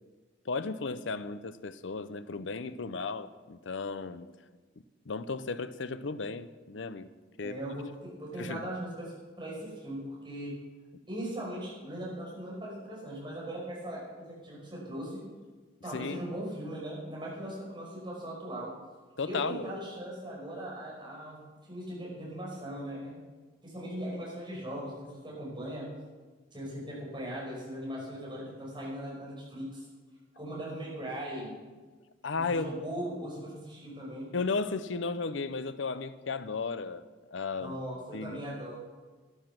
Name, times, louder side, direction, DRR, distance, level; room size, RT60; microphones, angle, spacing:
voice 1, 0.5-4.3 5.1-7.1 7.4-7.6 8.4-8.6 15.9-16.2 19.2-19.6 32.2-32.7 34.3-37.1 37.3-37.8 38.1-38.4, left 4 dB, 80° left, 0.7 m, -34 dB
voice 2, 7.4-10.5 11.1-15.2 15.8-18.7 19.2-23.1 23.6-25.9 26.5-29.8 30.4-31.5 32.3-34.3 37.6-38.8, right 1 dB, 25° right, 5.4 m, -39 dB
12.5 x 11.5 x 6.0 m
head